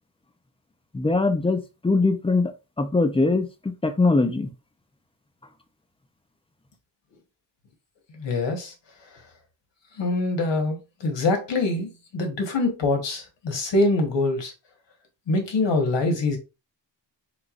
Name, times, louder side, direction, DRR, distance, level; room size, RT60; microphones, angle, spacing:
voice 1, 0.9-2.5 2.8-3.5 3.8-4.5, left 3 dB, 15° left, 0.5 m, -21 dB
voice 2, 8.1-8.7 10.0-14.5 15.3-16.4, left 2 dB, 75° left, 1.4 m, -24 dB
4.6 x 3.9 x 2.4 m
wide cardioid pair, 165°, 44 cm